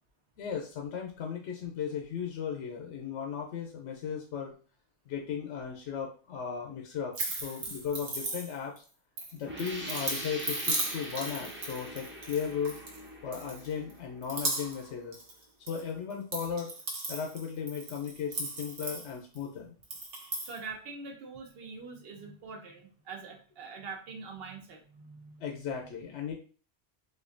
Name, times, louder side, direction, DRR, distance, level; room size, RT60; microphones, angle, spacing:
voice 1, 0.4-4.5 5.1-8.7 9.3-12.8 13.2-15.2 15.6-16.7 17.1-19.7 25.4-26.3, left 7 dB, 75° left, 1 dB, 0.9 m, -36 dB
sound 1, 7.1-8.8 9.2-13.0 13.3-13.9 14.2-14.9 15.1-15.8 16.1-19.4 19.8-20.6, right 2 dB, 90° right, 1.3 m, -36 dB
sound 2, 9.4-14.9, right 1 dB, 15° right, 0.5 m, -43 dB
voice 2, 20.4-25.6, right 4 dB, 55° right, 3 dB, 0.9 m, -44 dB
4.2 x 2.6 x 2.5 m, 0.39 s
omnidirectional pair, 1.2 m